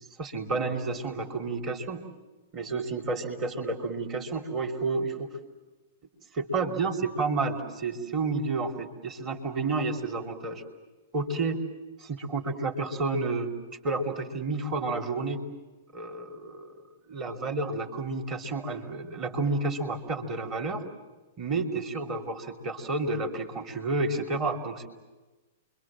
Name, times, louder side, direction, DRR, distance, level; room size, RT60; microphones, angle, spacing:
voice 1, 0.2-2.1 2.5-5.3 6.3-10.6 11.1-11.6 12.0-13.5 13.8-15.4 15.9-16.7 17.1-20.8 21.4-24.9, right 3 dB, 30° right, 4 dB, 3.2 m, -30 dB
29.0 x 24.0 x 7.5 m, 1.2 s
figure-of-eight pair, 105°, 0 cm